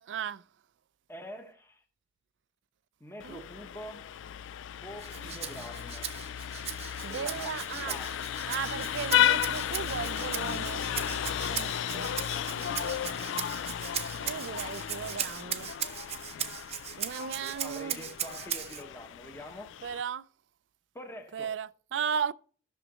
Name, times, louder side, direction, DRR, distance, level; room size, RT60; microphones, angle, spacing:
voice 1, 0.0-0.4 3.2-3.4 5.2-5.3 7.0-8.0 8.5-13.0 14.2-15.7 17.0-18.0 19.8-20.3 21.3-22.3, right 7 dB, 75° right, 0.4 m, -36 dB
voice 2, 1.1-1.8 3.0-4.1 4.8-6.3 7.1-8.2 12.8-13.4 17.3-19.7 20.9-21.5, equal, 15° left, 1.1 m, -46 dB
Vehicle horn car horn honking, 3.2-20.0, left 10 dB, 90° left, 0.3 m, -34 dB
Rattle (instrument), 5.0-18.8, right 9 dB, 35° right, 0.6 m, -38 dB
13.5 x 6.5 x 3.1 m
head